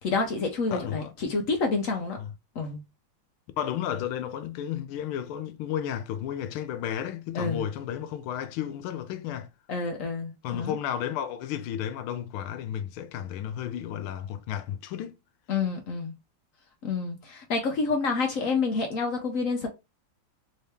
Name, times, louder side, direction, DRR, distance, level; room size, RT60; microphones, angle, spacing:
voice 1, 0.0-2.2 2.5-2.8 7.3-7.6 9.7-10.7 15.5-16.1 16.8-19.7, left 4 dB, 70° left, 0.7 m, -28 dB
voice 2, 0.7-1.1 2.2-2.3 3.6-9.5 10.4-15.1, left 10 dB, 90° left, 1.4 m, -33 dB
3.7 x 2.8 x 3.3 m
omnidirectional pair, 2.3 m